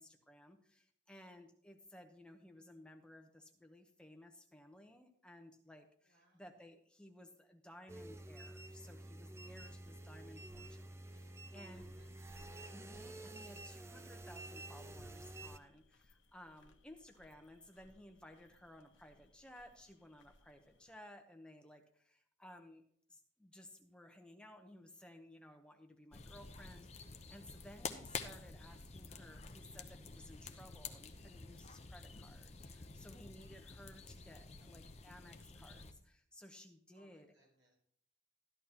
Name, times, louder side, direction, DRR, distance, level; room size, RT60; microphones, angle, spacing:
voice 1, 0.0-11.9 12.7-22.8 23.1-37.3, left 1 dB, 5° left, 5 dB, 0.8 m, -58 dB
voice 2, 6.0-6.5 11.5-12.5 20.7-20.8 33.5-33.7 36.9-37.7, equal, 80° right, -3 dB, 4.5 m, -72 dB
sound 1, 7.9-15.6, right 2 dB, 15° right, 0.3 m, -50 dB
sound 2, 9.5-20.9, left 1 dB, 75° left, 1.0 m, -67 dB
sound 3, 26.1-35.9, left 4 dB, 35° left, 0.7 m, -49 dB
13.5 x 11.0 x 2.9 m, 0.65 s
head